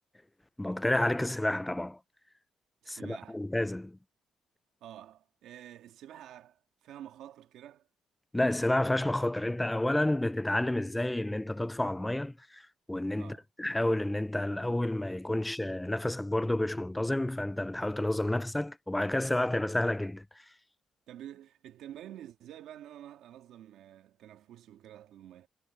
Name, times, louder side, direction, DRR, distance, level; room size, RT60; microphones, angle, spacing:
voice 1, 0.6-2.0 2.9-4.0 8.3-20.5, left 1 dB, 10° left, 0.3 m, -30 dB
voice 2, 2.8-3.4 4.8-7.9 13.1-13.4 21.1-25.5, right 11 dB, 80° right, 1.6 m, -49 dB
cardioid pair, 90°, 0 cm